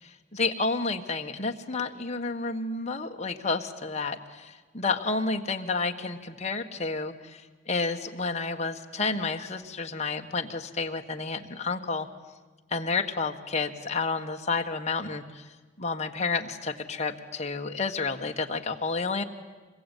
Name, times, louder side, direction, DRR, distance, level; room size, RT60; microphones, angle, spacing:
voice 1, 0.3-7.4 7.7-12.1 12.7-15.4 15.8-19.2, left 4 dB, 35° left, 4 dB, 1.5 m, -30 dB
26.0 x 21.5 x 9.2 m, 1.3 s
head